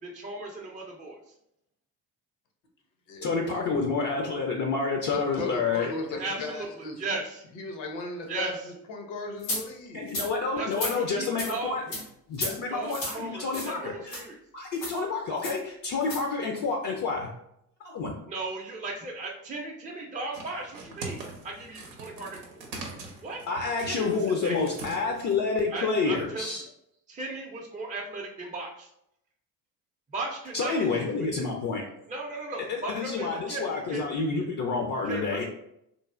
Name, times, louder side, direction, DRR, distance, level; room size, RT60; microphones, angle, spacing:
voice 1, 0.0-1.2 6.2-6.7 7.0-7.5 8.3-8.5 10.6-12.0 12.4-14.4 18.3-22.5 22.9-23.4 23.9-24.6 25.7-26.5 27.1-28.9 30.1-31.5 32.1-34.2 35.0-35.4, right 3 dB, 15° right, -1 dB, 0.5 m, -36 dB
voice 2, 3.2-5.9 6.2-6.3 9.9-11.8 12.3-14.2 14.5-17.3 17.8-18.1 23.5-26.6 30.5-31.9 32.7-35.4, left 4 dB, 40° left, 1 dB, 0.5 m, -29 dB
voice 3, 5.1-7.0 7.5-8.5 8.9-10.0, left 3 dB, 65° left, 3 dB, 0.8 m, -36 dB
sound 1, 9.4-9.6 10.1-10.3 10.7-10.9 11.4-11.5 11.9-12.0 12.3-12.5 12.9-13.2 13.5-13.7 14.1-14.2 14.8-15.0 15.4-15.6 16.0-16.2, left 1 dB, 90° left, 1.1 m, -32 dB
sound 2, 20.3-25.5, right 3 dB, 90° right, 0.6 m, -42 dB
3.2 x 2.0 x 2.4 m, 0.77 s
hypercardioid pair, 55°, 48 cm